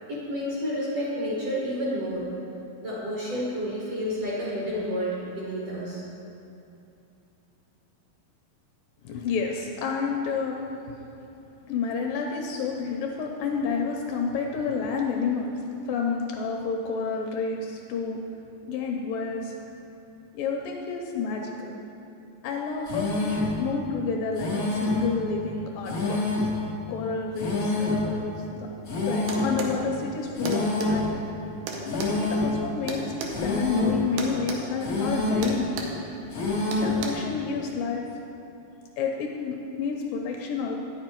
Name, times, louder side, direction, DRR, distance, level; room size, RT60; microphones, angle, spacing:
voice 1, 0.1-2.3 2.8-6.0, equal, 60° right, -6 dB, 1.7 m, -30 dB
voice 2, 9.0-10.6 11.7-15.6 15.9-18.2 18.7-19.5 20.3-21.7 22.4-26.2 26.9-28.7 29.1-31.1 31.8-35.7 36.8-38.0 39.0-40.8, left 5 dB, 80° left, 1 dB, 2.1 m, -30 dB
sound 1, 22.9-23.6 24.4-25.1 25.9-26.6 27.4-28.1 28.9-29.6 30.4-31.1 31.9-32.6 33.3-34.0 34.8-35.5 36.3-37.0, left 2 dB, 65° left, 0.8 m, -27 dB
sound 2, 29.3-29.8 30.5-30.9 31.7-33.4 34.2-34.6 34.9-35.1 35.4-36.0 36.7-37.1, right 5 dB, 85° right, 2.8 m, -34 dB
9.4 x 7.6 x 4.5 m, 2.7 s
omnidirectional pair, 4.3 m